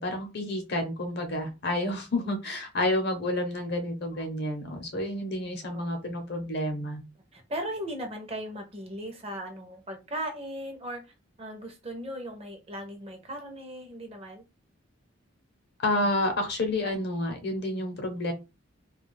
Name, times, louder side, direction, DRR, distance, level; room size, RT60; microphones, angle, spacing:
voice 1, 0.0-7.0 15.8-18.3, left 1 dB, 55° left, 0.7 m, -30 dB
voice 2, 7.3-14.4, equal, 30° right, 0.6 m, -38 dB
2.3 x 2.3 x 3.1 m
head